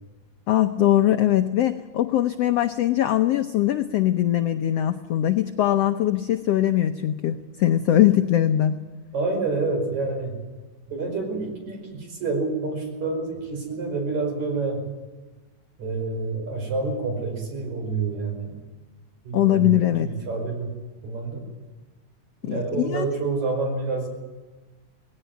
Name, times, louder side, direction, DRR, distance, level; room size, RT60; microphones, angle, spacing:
voice 1, 0.5-8.7 19.3-20.1 22.4-23.1, left 12 dB, 80° left, 8 dB, 1.4 m, -21 dB
voice 2, 9.1-10.4 10.9-14.8 15.8-18.6 19.2-19.7 20.0-20.7 21.0-21.4 22.4-24.1, right 3 dB, 55° right, 3 dB, 6.3 m, -28 dB
19.5 x 17.0 x 9.2 m, 1.2 s
omnidirectional pair, 3.9 m